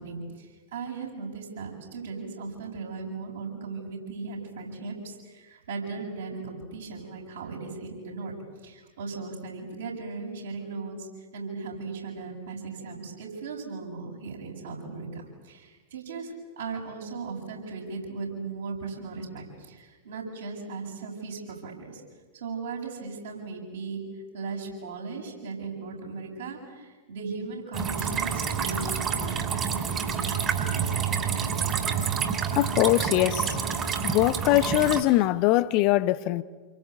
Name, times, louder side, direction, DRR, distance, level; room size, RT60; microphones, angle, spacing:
voice 1, 0.0-8.3 8.6-11.1 11.3-22.0 22.3-24.0 24.3-29.4 29.7-30.4, right 4 dB, 65° right, 7.7 m, -37 dB
sound 1, 27.7-35.0, right 6 dB, 25° right, 3.4 m, -28 dB
voice 2, 32.5-33.6 34.0-36.4, left 16 dB, 45° left, 0.8 m, -22 dB
28.5 x 23.5 x 8.4 m
figure-of-eight pair, 90°, 0 cm